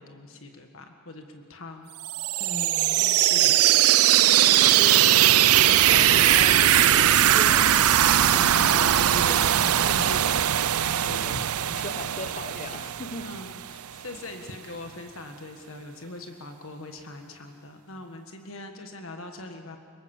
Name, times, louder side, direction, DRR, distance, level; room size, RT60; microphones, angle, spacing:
voice 1, 0.0-1.9 4.8-5.2 5.6-5.9 11.3-11.4 13.2-19.8, left 2 dB, 65° left, 4 dB, 1.6 m, -42 dB
sound 1, 2.0-13.7, right 12 dB, 85° right, 0.5 m, -20 dB
voice 2, 2.4-4.3 4.6-5.3 5.7-10.5 10.9-13.4, left 2 dB, 35° left, 10 dB, 0.9 m, -38 dB
25.0 x 22.5 x 7.2 m, 2.1 s
head